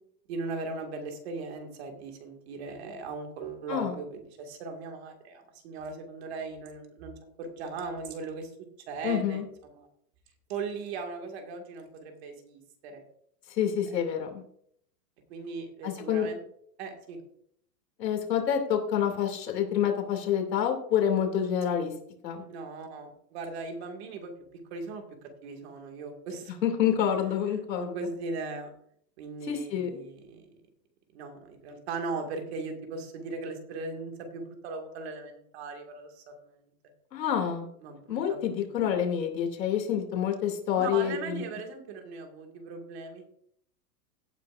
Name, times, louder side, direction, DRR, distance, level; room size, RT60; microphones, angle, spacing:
voice 1, 0.3-8.5 8.9-9.4 9.7-9.9 10.5-13.0 13.8-13.9 15.3-16.4 16.8-17.2 22.5-24.3 24.7-25.0 25.4-26.6 27.5-28.7 29.2-30.6 31.1-36.6 37.8-38.6 40.8-43.2, right 4 dB, 40° right, 4 dB, 2.2 m, -38 dB
voice 2, 9.0-9.4 13.5-14.4 15.8-16.3 18.0-21.9 22.2-22.4 26.6-28.0 29.5-30.0 37.1-37.7 38.1-41.4, left 9 dB, 85° left, 3 dB, 2.8 m, -28 dB
16.5 x 9.4 x 2.6 m, 0.68 s
supercardioid pair, 170°, 49 cm